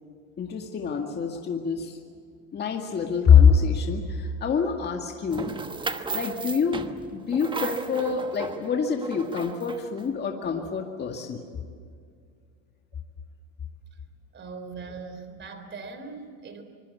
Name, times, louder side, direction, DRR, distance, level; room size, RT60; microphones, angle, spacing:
voice 1, 0.4-2.0 2.5-5.5 6.1-6.8 7.1-11.4, left 6 dB, 25° left, 2 dB, 2.1 m, -24 dB
sound 1, 5.3-10.0, right 4 dB, 10° right, 1.1 m, -35 dB
voice 2, 14.3-16.6, right 4 dB, 30° right, 8 dB, 3.7 m, -40 dB
25.5 x 20.5 x 8.4 m, 2.2 s
supercardioid pair, 125°, 38 cm